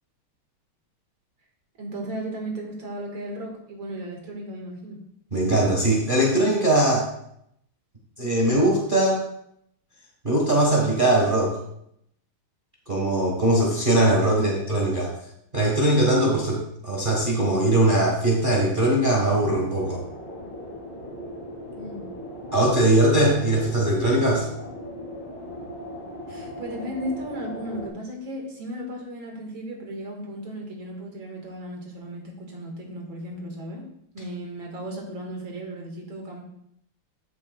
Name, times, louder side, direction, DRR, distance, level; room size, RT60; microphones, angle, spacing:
voice 1, 1.8-5.0 14.3-14.6 21.8-22.1 26.3-33.8 34.1-36.4, right 1 dB, 65° right, 0 dB, 2.5 m, -35 dB
voice 2, 5.3-7.1 8.2-9.2 10.2-11.6 12.9-15.1 15.5-20.0 22.5-24.5, right 1 dB, 25° right, -3 dB, 1.4 m, -21 dB
sound 1, 19.7-27.9, left 1 dB, 60° left, 3.5 m, -38 dB
13.5 x 6.4 x 2.4 m, 0.74 s
omnidirectional pair, 2.4 m